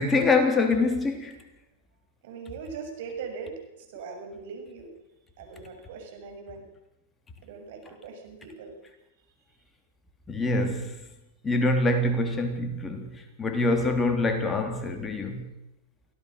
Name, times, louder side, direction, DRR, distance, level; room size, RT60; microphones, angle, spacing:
voice 1, 0.0-1.4 10.3-11.1 11.4-15.5, left 2 dB, 15° left, 3.4 m, -25 dB
voice 2, 2.2-4.9 5.4-6.6 7.4-8.7, right 5 dB, 60° right, 6.7 m, -40 dB
24.0 x 17.0 x 6.7 m
hypercardioid pair, 105°, 0 cm